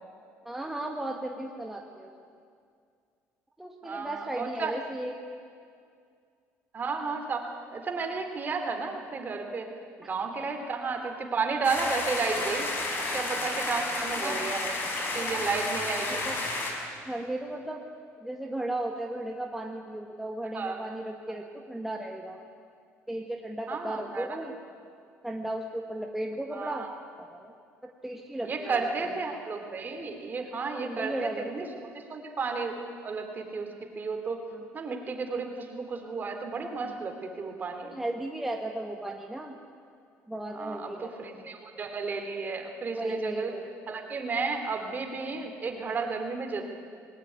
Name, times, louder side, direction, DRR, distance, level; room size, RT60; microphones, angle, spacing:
voice 1, 0.4-2.1 3.6-5.1 10.4-10.5 13.0-13.2 14.2-14.4 15.2-15.4 16.1-16.3 17.0-17.8 18.2-22.4 23.1-24.6 25.2-26.9 27.2-27.5 27.8-29.1 30.8-31.9 34.5-34.6 36.8-37.0 37.9-39.6 40.3-41.5 42.9-43.7, right 1 dB, 5° right, 1 dB, 1.7 m, -35 dB
voice 2, 3.8-4.7 6.7-9.7 10.0-12.7 13.1-16.2 20.5-20.8 23.7-24.4 26.5-27.0 28.4-33.7 33.9-34.4 34.7-37.9 40.5-40.9 41.2-43.5 43.9-46.6, right 4 dB, 35° right, 4 dB, 3.3 m, -33 dB
sound 1, 11.6-16.7, left 2 dB, 40° left, 5.5 m, -31 dB
20.0 x 19.0 x 9.7 m, 2.2 s
cardioid pair, 105°, 5 cm